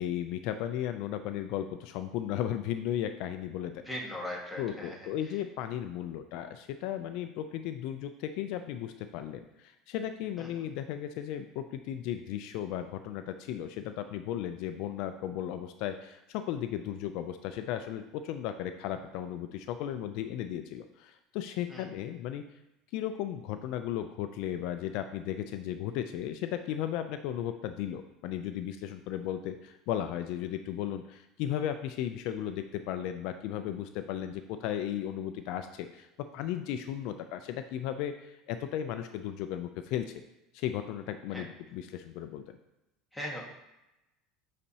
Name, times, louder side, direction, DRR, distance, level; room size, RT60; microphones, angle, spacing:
voice 1, 0.0-3.8 4.6-22.4 22.9-36.1 36.3-40.0 40.5-42.6, left 11 dB, 65° left, 8 dB, 0.4 m, -35 dB
voice 2, 3.8-5.4 10.4-10.5 21.7-21.8 41.3-41.4 43.1-43.4, left 1 dB, ahead, -3 dB, 1.5 m, -39 dB
9.9 x 4.2 x 2.8 m, 0.94 s
supercardioid pair, 135°, 0 cm